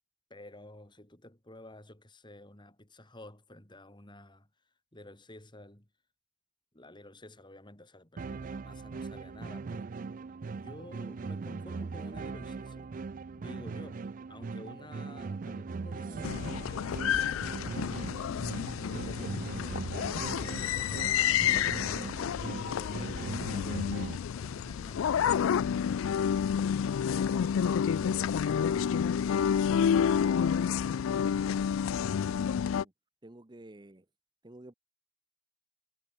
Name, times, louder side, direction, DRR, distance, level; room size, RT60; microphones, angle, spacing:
voice 1, 0.3-4.5 4.9-5.9 6.7-9.9 10.5-12.9 13.4-18.3 18.8-22.2 22.7-26.3 27.0-30.2, left 1 dB, 20° left, 3.5 m, -51 dB
sound 1, 8.2-24.2, right 4 dB, 40° right, 0.4 m, -40 dB
sound 2, 16.2-32.8, left 8 dB, 75° left, 0.3 m, -29 dB
voice 2, 33.2-34.1 34.4-34.7, right 1 dB, 20° right, 0.9 m, -51 dB
head